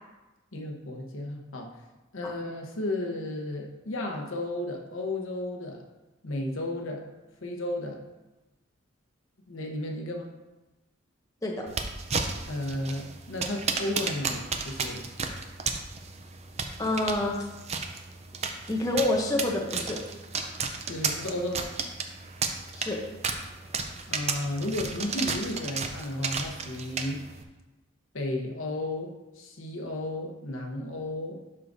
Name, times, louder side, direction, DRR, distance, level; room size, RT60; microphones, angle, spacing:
voice 1, 0.5-1.7 2.1-5.8 6.2-7.1 7.4-8.0 9.5-10.3 12.5-15.0 20.9-21.7 24.1-27.2 28.1-31.4, left 1 dB, 75° left, 1 dB, 1.0 m, -33 dB
sound 1, 11.7-27.4, right 5 dB, 30° right, 0.5 m, -34 dB
voice 2, 16.8-17.4 18.7-20.0 22.8-23.0, left 2 dB, 15° left, -1 dB, 0.8 m, -27 dB
11.0 x 4.8 x 2.7 m, 1.1 s
head